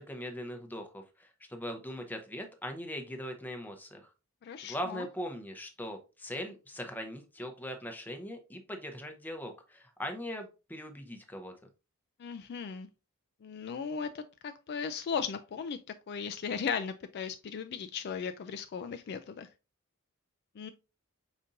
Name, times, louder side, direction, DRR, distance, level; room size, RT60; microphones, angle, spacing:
voice 1, 0.0-4.1 4.6-11.5, equal, 10° left, 0.7 m, -40 dB
voice 2, 4.4-5.1 12.2-12.9 13.4-15.8 16.1-19.5 20.6-20.7, left 6 dB, 50° left, 0.3 m, -37 dB
5.2 x 4.1 x 2.5 m
head